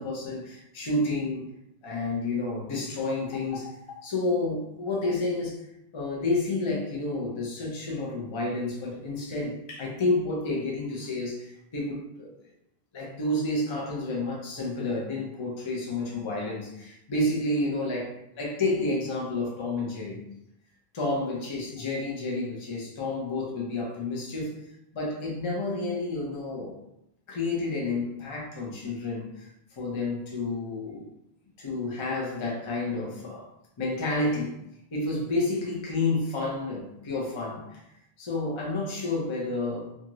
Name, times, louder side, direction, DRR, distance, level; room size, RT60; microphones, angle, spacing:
voice 1, 0.0-1.5 1.8-5.6 5.9-12.3 12.9-20.2 20.9-24.6 24.9-26.8 27.3-31.1 31.6-33.5 33.8-34.6 34.9-37.8 38.2-39.9, left 2 dB, 35° left, -3 dB, 0.5 m, -30 dB
2.6 x 2.4 x 2.9 m, 0.80 s
omnidirectional pair, 1.1 m